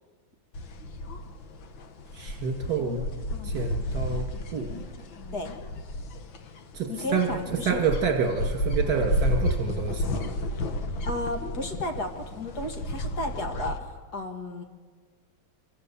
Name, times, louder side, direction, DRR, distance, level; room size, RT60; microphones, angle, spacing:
sound 1, 0.5-13.8, left 1 dB, 90° left, 2.2 m, -32 dB
voice 1, 2.1-3.0 3.4-4.7 6.7-10.3, right 5 dB, 60° right, 1 dB, 2.6 m, -28 dB
voice 2, 6.9-7.8 11.0-14.6, left 1 dB, 55° left, 3 dB, 2.8 m, -33 dB
27.5 x 25.0 x 7.2 m, 1.5 s
omnidirectional pair, 2.1 m